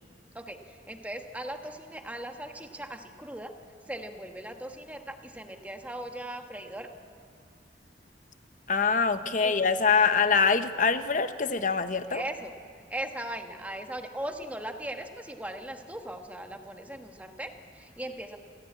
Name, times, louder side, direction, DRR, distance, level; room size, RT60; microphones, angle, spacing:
voice 1, 0.3-3.5 3.9-6.9 9.4-9.6 12.1-12.5 12.9-18.4, right 1 dB, 10° right, 5 dB, 1.3 m, -39 dB
voice 2, 8.7-12.2, left 5 dB, 45° left, 10 dB, 0.9 m, -24 dB
27.0 x 15.5 x 8.6 m, 2.2 s
head